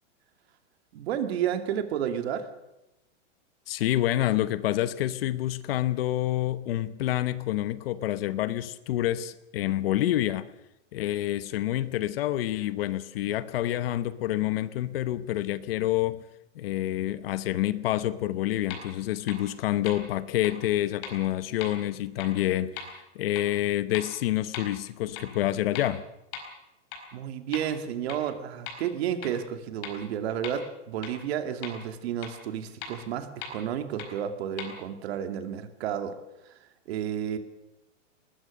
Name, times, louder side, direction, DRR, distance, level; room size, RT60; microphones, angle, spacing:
voice 1, 0.9-2.5 27.1-36.2 36.5-36.6 36.9-37.4, right 9 dB, 55° right, 8 dB, 2.4 m, -31 dB
voice 2, 3.7-10.5 10.9-16.2 16.5-26.0, left 14 dB, 50° left, 15 dB, 1.0 m, -28 dB
sound 1, 18.7-18.8 19.3-19.4 19.9-20.0 20.4-20.5 21.0-21.1 21.6-21.7 22.2-22.3 22.8-22.9 23.4-23.5 23.9-24.0 24.5-24.6 25.2-25.3 25.7-25.8 26.3-26.4 26.9-27.0 27.5-27.6 28.1-28.2 28.7-28.8 29.2-29.3 29.8-29.9 30.4-30.5 31.0-31.1 31.6-31.7 32.2-32.3 32.8-32.9 33.4-33.5 34.0-34.1 34.6-34.7, left 8 dB, 30° left, 4.4 m, -37 dB
20.5 x 19.5 x 6.5 m, 0.92 s
supercardioid pair, 160°, 37 cm